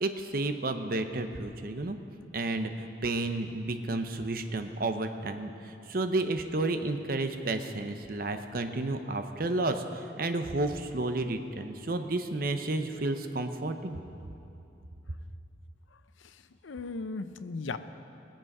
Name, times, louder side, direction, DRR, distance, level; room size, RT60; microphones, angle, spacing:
voice 1, 0.0-2.0 2.3-14.0, right 2 dB, 50° right, 7 dB, 0.7 m, -31 dB
voice 2, 15.9-17.8, left 3 dB, 85° left, 11 dB, 0.6 m, -38 dB
20.5 x 7.5 x 5.4 m, 2.7 s
head